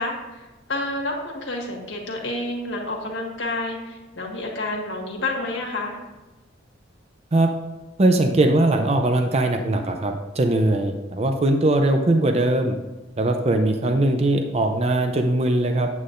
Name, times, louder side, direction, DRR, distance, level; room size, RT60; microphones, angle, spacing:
voice 1, 0.0-6.0, left 2 dB, 70° left, 0 dB, 1.7 m, -29 dB
voice 2, 8.0-12.8 13.2-15.9, right 1 dB, 30° right, 5 dB, 0.5 m, -20 dB
9.3 x 8.4 x 2.6 m, 1.1 s
head